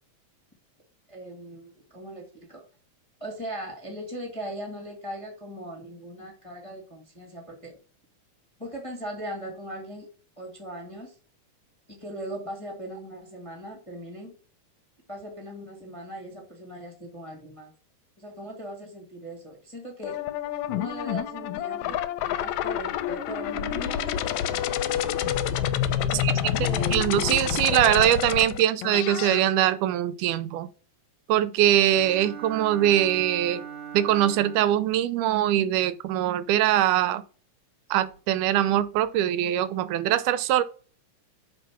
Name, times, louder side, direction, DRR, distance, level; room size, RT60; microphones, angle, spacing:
voice 1, 1.1-2.6 3.2-7.7 8.6-10.1 10.4-11.2 11.9-14.3 15.1-17.7 18.2-20.2 20.7-25.1 26.0-27.0, equal, 15° left, 1.3 m, -39 dB
sound 1, 20.0-29.4, left 10 dB, 75° left, 1.8 m, -28 dB
voice 2, 26.9-30.7 31.3-33.6 33.9-37.2 37.9-40.6, right 12 dB, 85° right, 2.1 m, -22 dB
Bowed string instrument, 31.9-34.9, right 8 dB, 55° right, 3.4 m, -40 dB
7.0 x 3.7 x 5.8 m
omnidirectional pair, 3.5 m